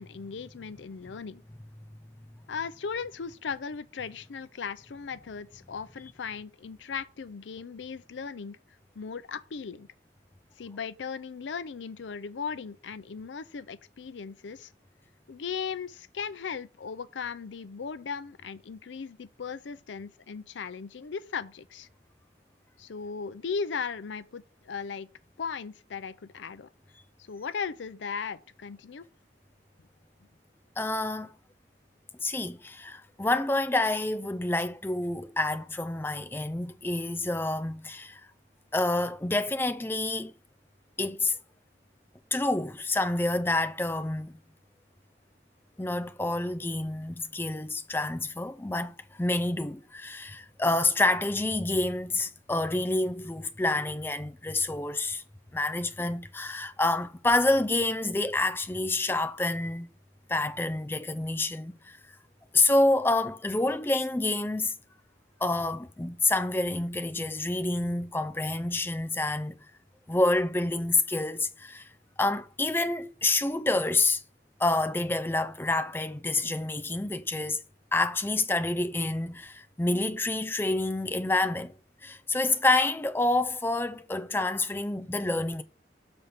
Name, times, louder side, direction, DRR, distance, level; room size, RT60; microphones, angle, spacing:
voice 1, 0.0-1.4 2.5-8.6 9.0-9.9 10.6-14.7 15.3-21.9 22.8-25.1 25.4-26.7 27.3-29.1, left 6 dB, 90° left, 0.5 m, -37 dB
voice 2, 30.8-31.3 32.2-38.2 38.7-40.3 41.0-41.4 42.3-44.4 45.8-55.2 55.5-59.9 60.3-62.0 62.5-64.8 65.4-69.6 70.1-71.9 72.2-74.2 74.6-77.6 77.9-81.7 82.0-85.6, left 2 dB, 10° left, 0.4 m, -28 dB
6.8 x 3.5 x 5.8 m
head